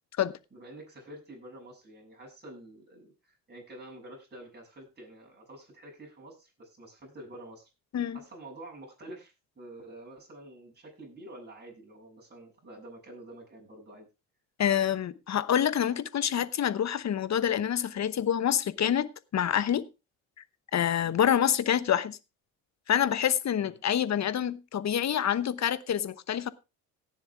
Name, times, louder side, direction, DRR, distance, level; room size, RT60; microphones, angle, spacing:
voice 1, 0.5-7.7 8.1-14.1 21.0-21.2 23.5-23.8, right 1 dB, 25° right, 7.5 m, -48 dB
voice 2, 14.6-19.9 20.7-22.2 22.9-26.5, left 9 dB, 40° left, 1.0 m, -27 dB
17.5 x 7.5 x 3.5 m
supercardioid pair, 70°, 40 cm